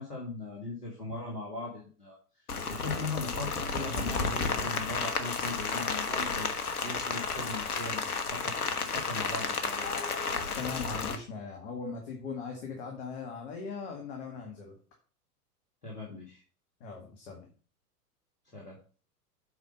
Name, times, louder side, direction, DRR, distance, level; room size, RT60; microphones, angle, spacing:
voice 1, 0.0-2.2 2.7-6.5 6.8-8.6 8.9-9.9 15.8-16.4 18.5-18.8, left 2 dB, 90° left, -4 dB, 2.3 m, -39 dB
Rain, 2.5-11.2, left 4 dB, 70° left, 1.4 m, -32 dB
voice 2, 10.5-14.8 16.8-17.5, left 5 dB, 45° left, 1 dB, 2.1 m, -39 dB
8.0 x 5.1 x 5.3 m, 0.40 s
figure-of-eight pair, 95°, 46 cm